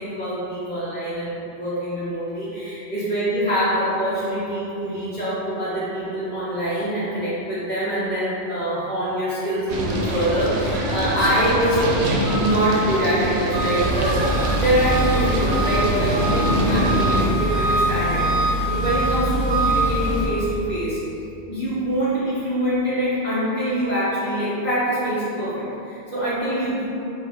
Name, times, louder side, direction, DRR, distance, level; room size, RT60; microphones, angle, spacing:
voice 1, 0.0-11.9 12.3-14.3 14.6-21.0 21.5-26.9, right 1 dB, 10° left, -12 dB, 0.5 m, -24 dB
sound 1, 9.7-17.3, right 1 dB, 60° right, 0.6 m, -24 dB
sound 2, 12.2-12.8 13.1-13.5 13.9-14.3 15.1-15.6 16.2-17.0, equal, 70° left, 1.2 m, -36 dB
Engine, 13.5-20.2, right 1 dB, 85° right, 1.1 m, -23 dB
4.8 x 2.2 x 4.0 m, 2.8 s
omnidirectional pair, 1.3 m